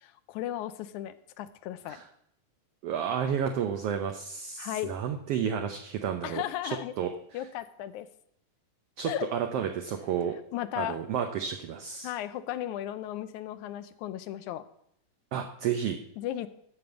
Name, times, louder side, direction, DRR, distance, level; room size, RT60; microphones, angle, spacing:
voice 1, 0.0-2.0 4.6-4.9 6.2-6.9 7.3-8.1 9.1-9.3 10.5-11.0 12.0-14.6 16.2-16.5, left 12 dB, 80° left, 12 dB, 2.1 m, -35 dB
voice 2, 2.8-7.1 9.0-10.3 10.8-12.1 15.3-16.0, right 8 dB, 70° right, 5 dB, 1.5 m, -31 dB
13.0 x 5.3 x 8.0 m, 0.73 s
omnidirectional pair, 3.5 m